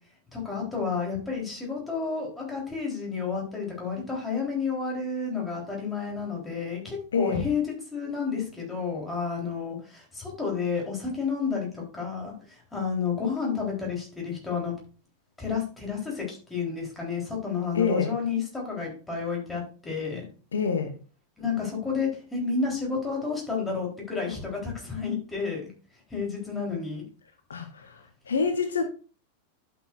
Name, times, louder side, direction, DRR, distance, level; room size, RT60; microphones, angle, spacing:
voice 1, 0.3-7.6 7.9-14.7 15.4-20.3 21.4-25.6 26.1-27.0, left 5 dB, 10° left, 3.6 m, -31 dB
voice 2, 7.1-7.4 17.7-18.1 20.5-21.0 27.5-28.8, left 5 dB, 70° left, 0.8 m, -27 dB
11.5 x 6.2 x 2.5 m
figure-of-eight pair, 90°, 0 cm